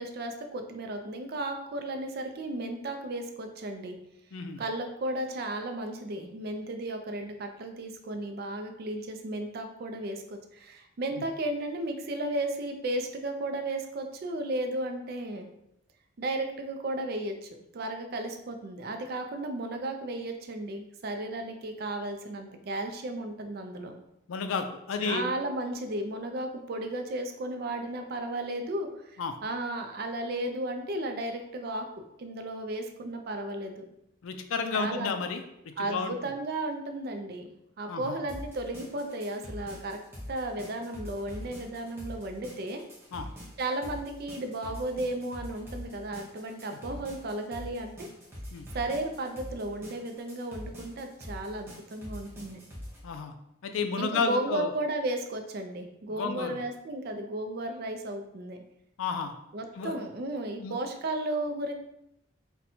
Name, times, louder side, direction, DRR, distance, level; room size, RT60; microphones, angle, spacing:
voice 1, 0.0-4.0 4.6-15.5 16.2-23.9 25.0-33.8 34.7-35.2 35.8-37.5 37.8-40.0 40.3-42.8 43.6-48.1 48.7-52.6 54.0-58.6 59.5-61.7, right 1 dB, 50° right, 5 dB, 0.4 m, -34 dB
voice 2, 4.3-4.6 24.3-25.3 29.2-29.4 34.2-35.4 35.8-36.1 37.9-38.2 43.1-43.3 48.5-48.7 53.0-53.3 53.6-54.7 56.1-56.6 59.0-59.3 59.8-59.9 60.6-60.7, left 5 dB, 75° left, 7 dB, 0.4 m, -31 dB
sound 1, 38.3-53.0, equal, 10° right, 0.7 m, -44 dB
4.2 x 2.2 x 2.6 m, 0.83 s
head